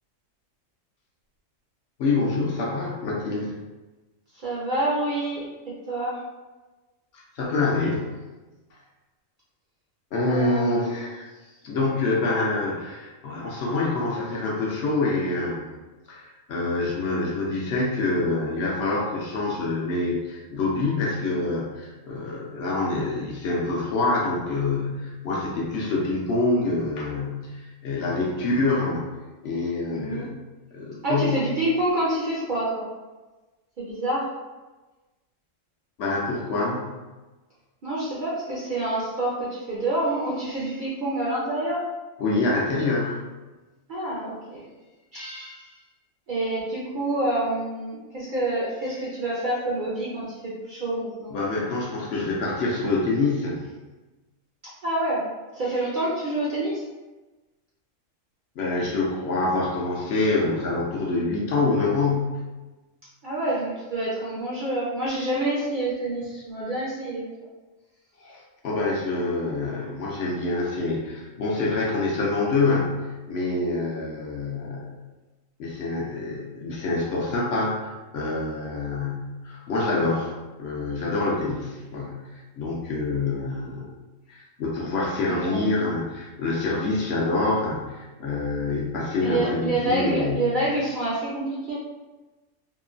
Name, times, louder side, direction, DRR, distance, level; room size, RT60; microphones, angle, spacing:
voice 1, 2.0-3.5 7.1-8.1 10.1-11.2 11.6-15.6 16.1-29.0 29.4-30.3 30.7-31.4 36.0-37.0 42.2-43.2 51.3-53.6 58.6-62.4 68.2-75.0 75.6-80.3 80.6-82.3 82.6-83.9 84.3-90.5, left 3 dB, 65° left, -3 dB, 0.7 m, -26 dB
voice 2, 4.4-5.5 5.9-6.2 10.3-10.9 29.9-30.3 31.0-32.8 33.8-34.3 37.8-41.8 43.9-44.6 45.1-45.7 46.3-51.3 54.8-55.3 55.5-56.8 63.2-67.3 85.2-85.6 89.2-91.7, right 1 dB, 60° right, -7 dB, 0.5 m, -27 dB
3.0 x 2.1 x 2.4 m, 1.2 s
omnidirectional pair, 1.4 m